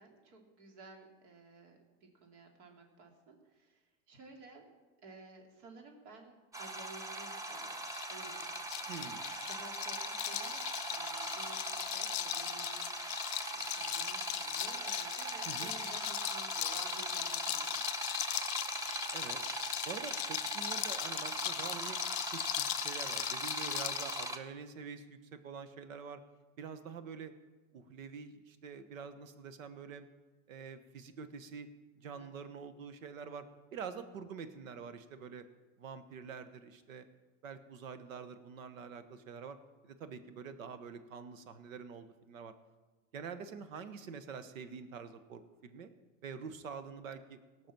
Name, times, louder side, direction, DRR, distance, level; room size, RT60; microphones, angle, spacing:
voice 1, 0.0-4.7 5.0-8.6 9.4-17.8 32.1-32.3, right 3 dB, 60° right, 1 dB, 3.1 m, -54 dB
sound 1, 6.5-24.4, right 2 dB, 10° right, 0.7 m, -40 dB
sound 2, 7.9-24.3, left 19 dB, 55° left, 0.5 m, -39 dB
voice 2, 8.9-9.2 15.4-15.7 19.1-19.4 19.8-22.0 22.3-26.2 26.6-27.3 27.7-30.1 30.5-31.7 32.0-33.5 33.7-35.4 35.8-37.0 37.4-39.6 39.8-42.5 43.1-45.9 46.2-47.4, right 6 dB, 90° right, 11 dB, 1.2 m, -46 dB
18.0 x 6.2 x 6.0 m, 1.2 s
supercardioid pair, 125°, 39 cm